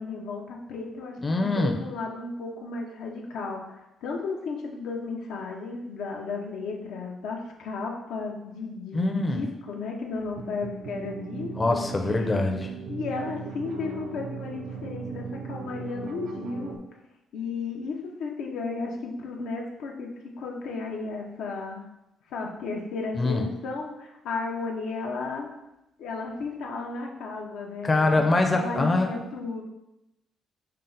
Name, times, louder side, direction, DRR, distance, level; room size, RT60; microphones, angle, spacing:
voice 1, 0.0-11.8 12.1-12.2 12.9-16.8 17.3-20.1 20.4-21.9 22.3-25.5 26.0-28.2 28.5-29.6, left 4 dB, 85° left, 0 dB, 0.6 m, -34 dB
voice 2, 1.2-1.8 8.9-9.4 11.6-12.7 23.1-23.4 27.8-29.2, left 2 dB, 25° left, 3 dB, 0.5 m, -24 dB
sound 1, 10.2-16.8, right 5 dB, 75° right, 0.4 m, -38 dB
5.4 x 2.0 x 3.8 m, 0.92 s
cardioid pair, 90°, 0 cm